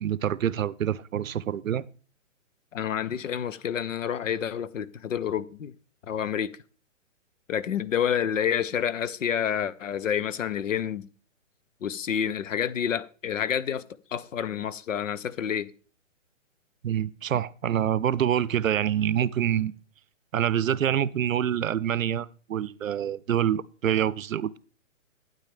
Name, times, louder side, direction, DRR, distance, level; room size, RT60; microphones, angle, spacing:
voice 1, 0.0-1.8 16.8-19.7 20.3-24.6, right 10 dB, 80° right, 0.7 m, -26 dB
voice 2, 2.7-5.7 6.1-6.6 7.5-11.1 11.8-13.8 14.1-15.7, left 8 dB, 70° left, 0.8 m, -28 dB
12.0 x 9.1 x 3.4 m
hypercardioid pair, 160°, 39 cm